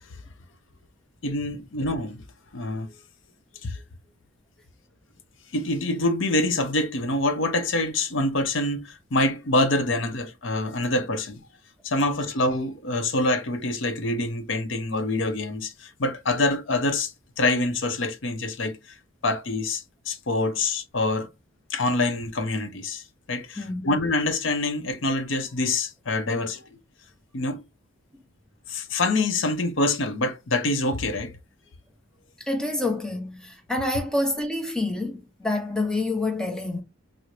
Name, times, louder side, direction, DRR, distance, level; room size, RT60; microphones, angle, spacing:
voice 1, 1.2-2.2 2.5-2.9 3.6-3.8 5.5-11.4 11.8-18.8 19.2-21.3 21.7-23.0 23.3-26.6 27.3-27.6 28.7-31.3, left 2 dB, 60° left, 0.7 m, -26 dB
voice 2, 32.4-36.8, left 2 dB, 5° left, 0.6 m, -27 dB
4.6 x 2.0 x 2.5 m
head